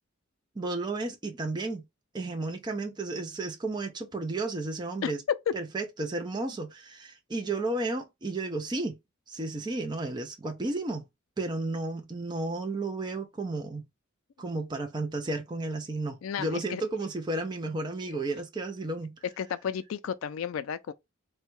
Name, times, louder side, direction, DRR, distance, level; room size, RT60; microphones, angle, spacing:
voice 1, 0.6-1.8 2.1-5.2 5.5-9.0 9.3-11.0 11.4-13.8 14.4-19.2, right 2 dB, 20° right, 0.4 m, -33 dB
voice 2, 16.2-16.8 18.1-18.2 19.4-20.9, left 7 dB, 70° left, 0.3 m, -33 dB
3.5 x 2.2 x 3.0 m
head